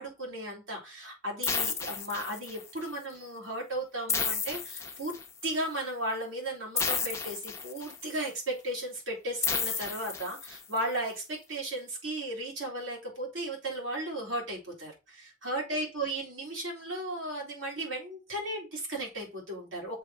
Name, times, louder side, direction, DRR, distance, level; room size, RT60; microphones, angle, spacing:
voice 1, 0.0-5.2 5.4-20.0, right 1 dB, 70° right, -2 dB, 3.7 m, -35 dB
sound 1, 1.4-2.8 4.1-5.5 6.8-8.1 9.4-10.8, left 6 dB, 15° left, 0.7 m, -32 dB
6.7 x 3.2 x 5.7 m, 0.26 s
head